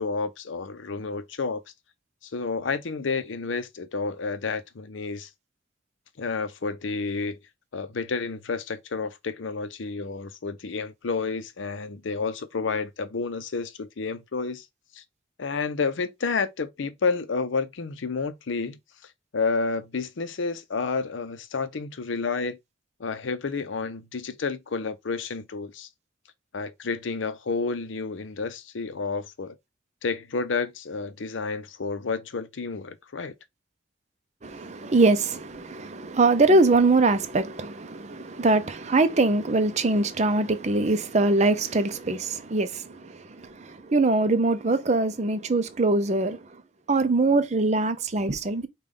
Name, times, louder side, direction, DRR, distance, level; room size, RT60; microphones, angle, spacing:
voice 1, 0.0-1.6 2.2-5.3 6.2-7.4 7.7-14.7 14.9-15.0 15.4-18.8 19.3-22.6 23.0-25.9 26.5-29.6 30.0-33.3, left 4 dB, 80° left, 0.6 m, -30 dB
voice 2, 34.4-46.4 46.9-48.7, right 2 dB, 35° right, 0.5 m, -23 dB
5.2 x 2.3 x 3.6 m
head